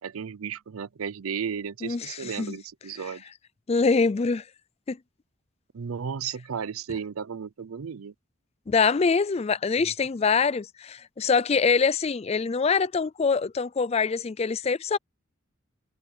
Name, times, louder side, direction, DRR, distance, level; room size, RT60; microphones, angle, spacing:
voice 1, 0.0-3.2 5.7-8.1 9.8-9.9, right 7 dB, 85° right, 0.5 m, -34 dB
voice 2, 1.8-2.6 3.7-4.4 4.9-5.0 8.7-15.0, left 5 dB, 30° left, 0.4 m, -24 dB
head